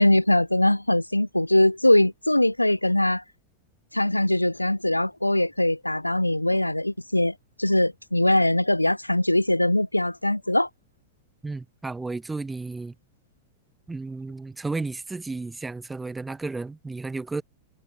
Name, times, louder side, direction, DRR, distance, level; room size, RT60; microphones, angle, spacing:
voice 1, 0.0-3.2 3.9-10.7, left 1 dB, 85° left, 0.3 m, -22 dB
voice 2, 11.4-12.9 13.9-17.4, right 3 dB, 10° right, 1.7 m, -33 dB
figure-of-eight pair, 90°, 0 cm